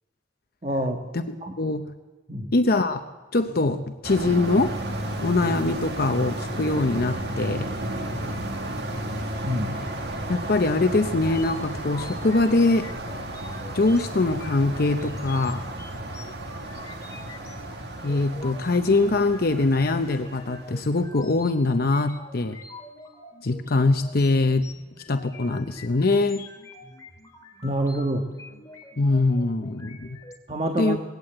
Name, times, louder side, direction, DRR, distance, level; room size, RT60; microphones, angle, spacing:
voice 1, 0.6-1.0 1.4-1.6 2.3-2.5 9.4-9.8 27.6-28.3 30.5-31.0, right 1 dB, 35° right, 3 dB, 1.4 m, -26 dB
voice 2, 2.5-3.0 3.3-4.8 5.2-7.7 10.3-12.9 13.7-15.6 18.0-22.6 23.4-24.7 25.1-26.4 29.0-30.1 30.8-31.0, left 2 dB, 50° left, 8 dB, 0.7 m, -23 dB
sound 1, 4.0-21.1, right 1 dB, 60° right, 2.0 m, -33 dB
sound 2, 11.2-30.4, left 2 dB, 20° left, 2.1 m, -46 dB
19.5 x 17.5 x 7.8 m, 1.3 s
head